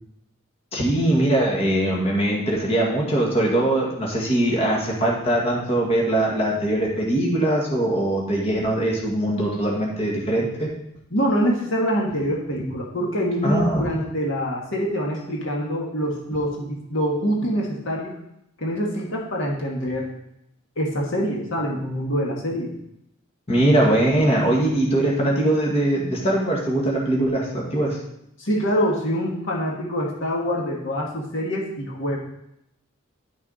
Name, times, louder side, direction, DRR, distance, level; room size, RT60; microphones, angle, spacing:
voice 1, 0.7-10.7 13.4-13.8 23.5-28.0, right 1 dB, 30° left, -3 dB, 1.9 m, -21 dB
voice 2, 11.1-18.1 18.6-20.1 20.8-22.7 28.4-32.2, equal, 60° left, -2 dB, 1.6 m, -25 dB
11.0 x 6.2 x 4.1 m, 0.79 s
head